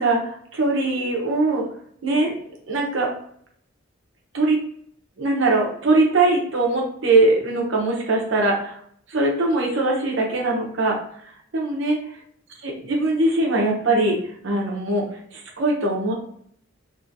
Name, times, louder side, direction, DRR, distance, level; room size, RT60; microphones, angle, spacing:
voice 1, 0.0-1.7 2.0-2.3 2.7-3.1 4.3-4.6 5.2-8.8 9.1-12.0 12.6-16.1, right 2 dB, 70° right, -1 dB, 0.8 m, -21 dB
2.6 x 2.6 x 2.7 m, 0.65 s
head